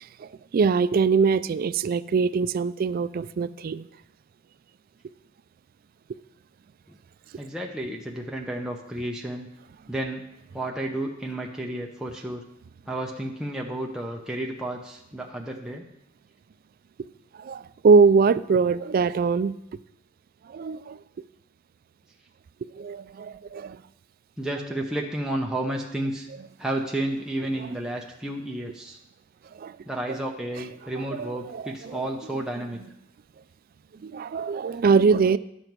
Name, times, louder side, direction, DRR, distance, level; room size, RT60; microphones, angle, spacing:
voice 1, 0.2-3.8 17.4-19.6 20.5-21.0 22.8-23.8 29.6-29.8 31.2-32.0 34.0-35.4, right 5 dB, 45° right, 15 dB, 0.3 m, -22 dB
voice 2, 7.4-9.5 9.9-10.2 10.5-12.4 12.9-15.8 24.4-26.3 26.6-29.0 29.8-32.8 34.7-34.8, right 1 dB, 5° right, -1 dB, 0.7 m, -31 dB
10.5 x 7.0 x 4.6 m, 0.81 s
head